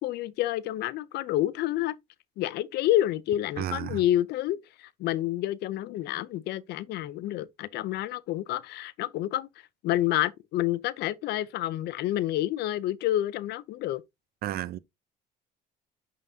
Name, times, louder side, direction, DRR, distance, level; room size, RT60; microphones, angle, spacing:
voice 1, 0.0-2.0 2.4-9.5 9.8-14.0, left 14 dB, 75° left, 0.6 m, -29 dB
voice 2, 3.6-4.0 14.4-14.8, right 12 dB, 65° right, 0.6 m, -32 dB
9.0 x 3.8 x 2.7 m
cardioid pair, 110°, 17 cm